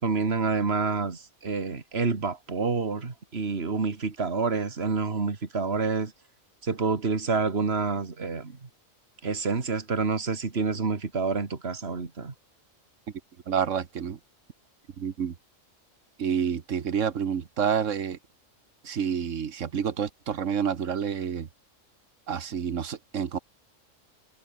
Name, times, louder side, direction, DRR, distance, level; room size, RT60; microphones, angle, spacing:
voice 1, 0.0-6.1 6.6-8.6 9.2-12.3, right 4 dB, 50° right, 2.5 m, -28 dB
voice 2, 13.5-14.2 15.0-15.3 16.2-18.2 18.8-21.5 22.3-23.4, right 7 dB, 70° right, 1.6 m, -28 dB
omnidirectional pair, 1.3 m